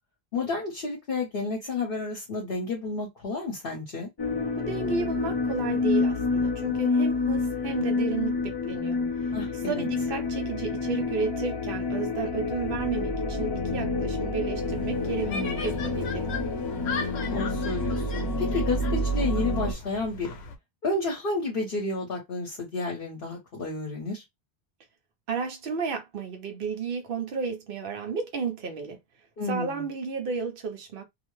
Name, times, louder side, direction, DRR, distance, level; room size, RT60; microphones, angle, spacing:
voice 1, 0.3-4.1 9.3-9.8 15.3-15.8 17.3-20.4 20.8-24.2 29.4-29.8, left 3 dB, 60° left, 1.1 m, -31 dB
sound 1, 4.2-19.7, left 3 dB, 30° left, 0.5 m, -28 dB
voice 2, 4.6-9.0 9.7-15.3 15.6-16.3 25.3-29.0 29.5-31.0, right 5 dB, 60° right, 1.0 m, -32 dB
sound 2, 14.6-20.6, left 4 dB, 90° left, 1.0 m, -38 dB
2.8 x 2.1 x 3.1 m
omnidirectional pair, 1.1 m